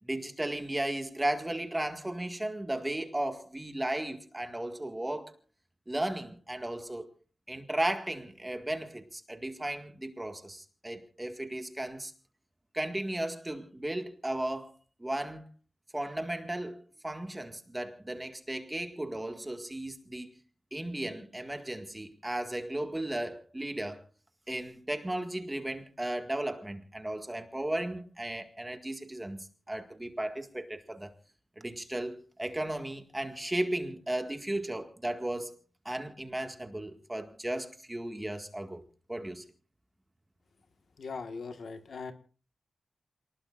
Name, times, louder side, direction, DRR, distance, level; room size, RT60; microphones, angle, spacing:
voice 1, 0.0-5.3 5.9-7.1 7.5-12.1 12.7-14.7 15.0-15.5 15.9-20.3 20.7-24.0 24.5-31.1 31.6-35.6 35.9-38.8 39.1-39.4, right 1 dB, 15° right, 1.9 m, -35 dB
voice 2, 41.0-42.1, left 4 dB, 75° left, 1.6 m, -40 dB
28.5 x 20.0 x 2.5 m
wide cardioid pair, 145°, 0 cm